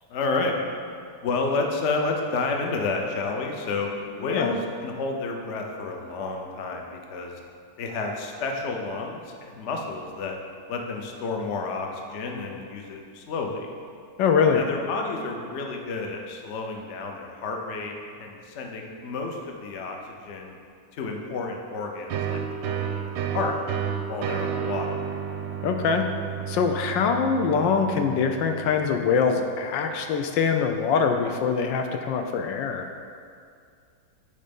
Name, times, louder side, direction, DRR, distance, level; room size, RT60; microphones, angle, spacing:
voice 1, 0.1-0.5 1.2-7.4 7.8-10.4 10.7-13.7 14.5-20.6 20.9-23.5 24.1-25.0, left 3 dB, 60° left, 2 dB, 0.7 m, -30 dB
voice 2, 4.2-4.6 14.2-14.6 25.6-26.0 26.5-32.9, left 6 dB, 75° left, 5 dB, 1.2 m, -23 dB
sound 1, 22.1-29.6, right 8 dB, 80° right, 1.3 m, -32 dB
8.6 x 4.1 x 5.2 m, 2.3 s
omnidirectional pair, 2.1 m